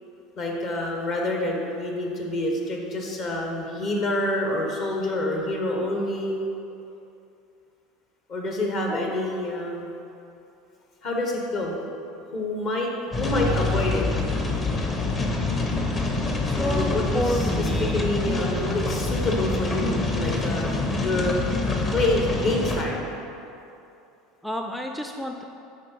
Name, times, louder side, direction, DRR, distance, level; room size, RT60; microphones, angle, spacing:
voice 1, 0.4-6.4 8.3-9.9 11.0-11.8 12.3-12.9 13.2-14.0 16.5-21.4 21.9-23.1, left 1 dB, 45° left, 0 dB, 1.3 m, -27 dB
sound 1, 13.1-22.8, left 2 dB, 30° left, 1.0 m, -26 dB
voice 2, 16.4-18.1 24.4-25.4, equal, ahead, 3 dB, 0.4 m, -30 dB
10.5 x 4.3 x 4.1 m, 2.7 s
figure-of-eight pair, 70°, 0 cm